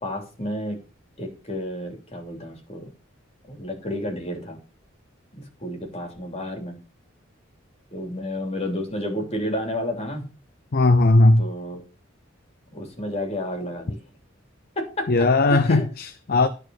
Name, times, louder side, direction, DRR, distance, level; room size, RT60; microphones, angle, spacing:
voice 1, 0.0-0.8 1.2-2.9 3.5-4.6 5.3-6.7 7.9-10.3 11.4-11.8 12.7-14.0 14.8-15.1 15.5-15.8, left 1 dB, 30° left, 3.1 m, -31 dB
voice 2, 10.7-11.5 15.1-16.5, left 2 dB, 50° left, 0.6 m, -17 dB
11.0 x 4.5 x 6.3 m
head